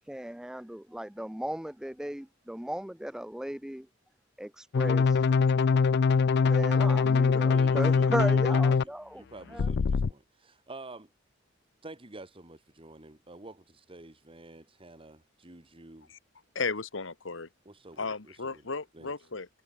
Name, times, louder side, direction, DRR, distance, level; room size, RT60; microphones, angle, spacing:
voice 1, 0.1-3.9 4.4-5.2 6.4-9.2 9.5-9.7, right 1 dB, 5° right, 0.4 m, -36 dB
sound 1, 4.7-8.8 9.6-10.1, left 5 dB, 60° left, 0.4 m, -23 dB
voice 2, 7.4-11.1 11.8-16.1 17.7-18.6 18.9-19.1, right 2 dB, 30° right, 2.3 m, -48 dB
voice 3, 16.5-17.5 18.0-19.5, left 4 dB, 75° left, 1.5 m, -34 dB
head